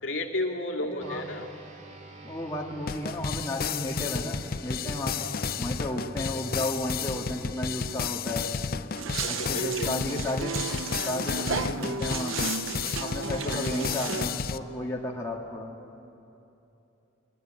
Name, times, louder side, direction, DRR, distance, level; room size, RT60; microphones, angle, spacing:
voice 1, 0.0-1.5 5.2-5.5 9.2-9.9 11.6-11.8 13.2-13.6, left 1 dB, 75° left, 1 dB, 2.4 m, -34 dB
voice 2, 0.8-1.2 2.2-5.3 5.6-8.5 9.3-10.6 11.0-12.6 13.0-15.7, left 1 dB, 15° left, -2 dB, 2.0 m, -33 dB
sound 1, 1.0-10.8, right 2 dB, 40° right, 2.3 m, -47 dB
sound 2, 2.9-14.6, left 6 dB, 50° left, 0.6 m, -32 dB
sound 3, 9.0-14.3, right 5 dB, 80° right, 0.8 m, -33 dB
23.0 x 21.5 x 9.0 m, 2.8 s
head